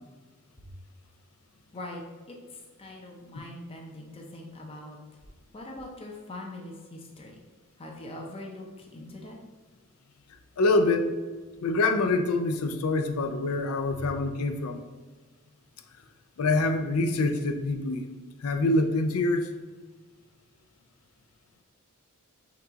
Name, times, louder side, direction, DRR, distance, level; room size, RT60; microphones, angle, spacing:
voice 1, 2.3-5.0 5.5-7.4 7.8-9.4 13.9-14.1, left 1 dB, 25° left, 0 dB, 0.6 m, -42 dB
voice 2, 10.6-11.2 11.6-14.8 16.4-18.1 18.4-19.5, left 2 dB, 90° left, 8 dB, 0.5 m, -25 dB
5.9 x 2.4 x 3.8 m, 1.4 s
head